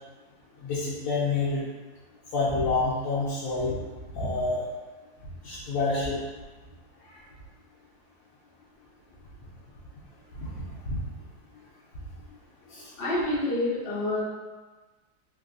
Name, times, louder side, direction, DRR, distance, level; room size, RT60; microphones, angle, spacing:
voice 1, 0.6-1.6 2.3-3.7 4.1-4.6 5.4-6.2 10.4-10.5 10.9-11.0 12.7-12.9, left 3 dB, 85° left, -8 dB, 1.3 m, -27 dB
voice 2, 13.0-14.2, left 2 dB, 60° left, -6 dB, 0.5 m, -27 dB
3.3 x 2.6 x 2.5 m, 1.3 s
omnidirectional pair, 2.0 m